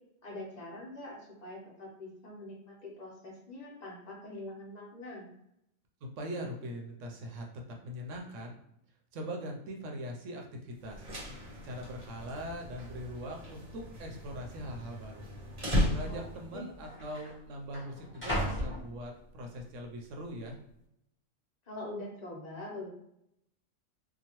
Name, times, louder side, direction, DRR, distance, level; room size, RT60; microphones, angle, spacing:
voice 1, 0.2-5.3 16.1-16.3 16.5-16.6 21.6-22.9, left 2 dB, 35° left, -3 dB, 0.9 m, -44 dB
voice 2, 6.0-7.5 7.8-8.6 9.1-11.1 11.6-15.3 15.9-20.6, equal, 75° right, 2 dB, 0.9 m, -41 dB
sound 1, 10.8-10.9 11.2-11.6 12.3-12.4 13.1-13.6 13.9-14.0 14.9-15.1 16.1-16.2 16.4-19.6 20.1-20.5, equal, 10° left, 0.9 m, -39 dB
sound 2, 10.8-16.6, equal, 35° right, 0.9 m, -36 dB
2.8 x 2.3 x 2.9 m, 0.78 s
omnidirectional pair, 1.3 m